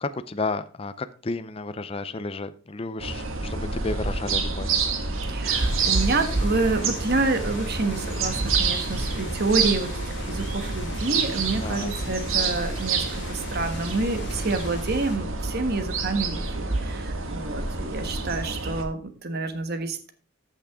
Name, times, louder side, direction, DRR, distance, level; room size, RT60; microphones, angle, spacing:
voice 1, 0.0-4.8 11.6-12.0, left 3 dB, 30° left, 11 dB, 0.5 m, -32 dB
sound 1, 3.0-18.8, right 4 dB, 85° right, 1.7 m, -28 dB
voice 2, 5.3-20.1, right 3 dB, 50° right, 8 dB, 1.3 m, -28 dB
sound 2, 5.5-15.2, left 2 dB, 60° left, 2.6 m, -40 dB
14.0 x 6.1 x 3.6 m, 0.37 s
head